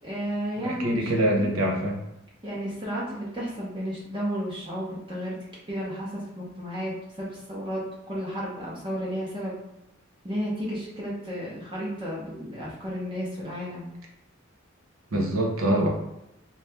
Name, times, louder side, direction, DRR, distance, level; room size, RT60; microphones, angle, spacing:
voice 1, 0.0-1.5 2.4-5.4 5.7-7.8 8.1-9.5 10.2-13.9, equal, 25° right, -5 dB, 0.7 m, -32 dB
voice 2, 0.6-2.0 15.1-15.9, right 1 dB, 90° right, 0 dB, 0.8 m, -24 dB
2.8 x 2.3 x 3.3 m, 0.89 s
head